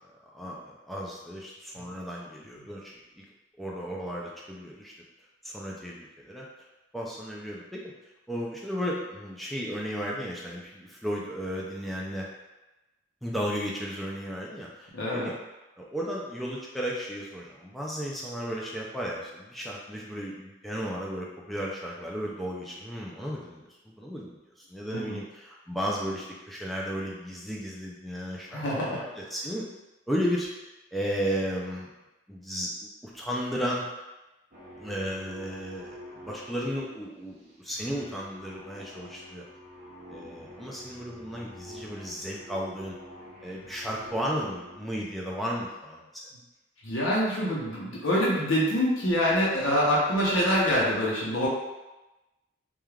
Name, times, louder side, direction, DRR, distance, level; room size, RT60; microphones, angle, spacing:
voice 1, 0.3-3.2 3.6-4.9 5.4-6.5 6.9-7.8 8.3-12.3 13.2-15.3 15.8-24.4 24.7-29.6 30.1-30.5 30.9-31.9 32.3-33.9 34.8-39.4 40.1-43.0 43.4-46.2, equal, ahead, -4 dB, 0.3 m, -34 dB
voice 2, 14.9-15.3 24.9-25.2 28.5-29.0 46.8-51.5, equal, 80° left, -5 dB, 0.7 m, -25 dB
sound 1, 34.5-45.0, equal, 40° right, 0.7 m, -47 dB
3.2 x 2.3 x 2.3 m, 1.0 s
head